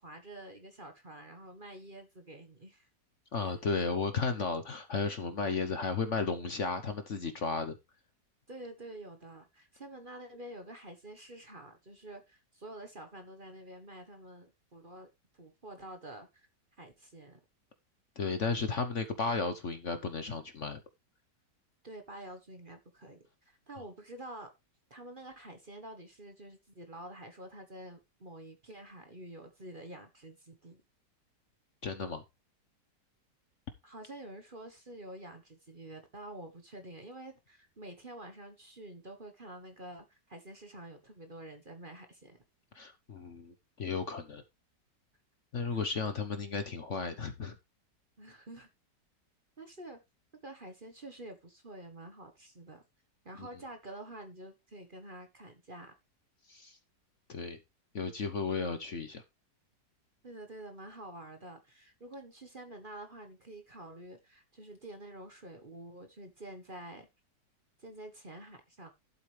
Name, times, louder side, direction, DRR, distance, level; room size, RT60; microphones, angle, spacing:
voice 1, 0.0-2.9 3.4-3.5 8.5-15.1 15.3-16.5 16.8-17.4 21.8-24.5 24.9-30.8 33.8-42.4 45.7-45.8 48.2-48.7 49.6-50.0 50.4-52.8 53.2-55.9 60.2-67.1 67.8-68.9, right 1 dB, 30° right, 7 dB, 1.4 m, -48 dB
voice 2, 3.3-7.8 18.2-20.8 31.8-32.2 42.7-44.4 45.5-47.5 53.4-53.5 56.5-56.8 57.3-57.6 57.9-59.2, left 4 dB, 50° left, 9 dB, 1.2 m, -34 dB
11.5 x 8.1 x 3.3 m, 0.22 s
omnidirectional pair, 1.9 m